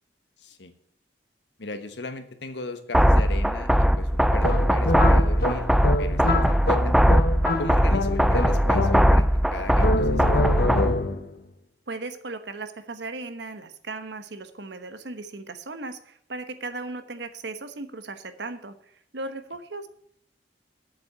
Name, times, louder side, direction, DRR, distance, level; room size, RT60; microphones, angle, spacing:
voice 1, 0.4-0.7 1.6-5.7 6.0-6.9 7.6-10.7, left 3 dB, 80° left, 9 dB, 1.2 m, -37 dB
sound 1, 2.9-10.9, equal, ahead, 0.3 m, -20 dB
sound 2, 4.4-9.4 9.8-11.3, left 2 dB, 60° left, 1.0 m, -26 dB
voice 2, 11.9-18.8 19.1-19.9, right 3 dB, 75° right, 10 dB, 1.1 m, -36 dB
8.3 x 7.7 x 7.4 m, 0.68 s
head